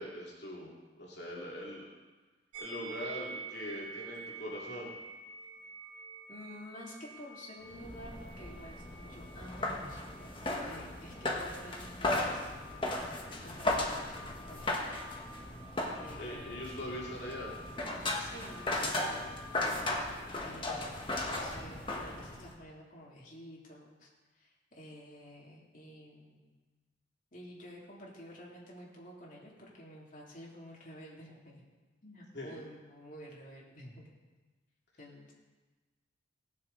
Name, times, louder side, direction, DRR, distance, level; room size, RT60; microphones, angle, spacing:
voice 1, 0.0-1.9 2.6-4.9 16.2-17.5 32.3-32.5, equal, 60° left, -5 dB, 2.6 m, -42 dB
sound 1, 2.5-19.9, right 2 dB, 40° right, 4.0 m, -50 dB
voice 2, 6.3-12.5 12.9-15.0 16.0-16.7 18.2-19.3 20.4-24.1 24.3-26.5 27.3-31.6 32.0-34.1 35.0-35.3, equal, 45° left, -4 dB, 2.8 m, -51 dB
sound 2, 7.7-22.6, left 2 dB, 25° left, 1.4 m, -36 dB
18.0 x 9.6 x 4.0 m, 1.3 s
head